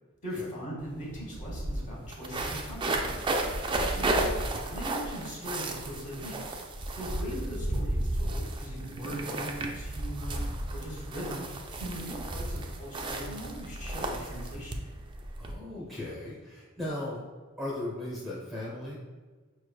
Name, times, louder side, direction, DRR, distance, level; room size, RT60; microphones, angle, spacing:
voice 1, 0.2-3.5 3.9-4.4 4.7-6.4 6.9-10.4 10.7-11.5 11.8-14.8, equal, 35° left, -4 dB, 1.2 m, -40 dB
sound 1, 0.8-0.9 1.1-15.5, right 1 dB, 20° right, 0.3 m, -33 dB
voice 2, 15.4-17.2 17.6-19.0, left 1 dB, ahead, -6 dB, 0.7 m, -37 dB
5.3 x 3.2 x 2.2 m, 1.4 s
head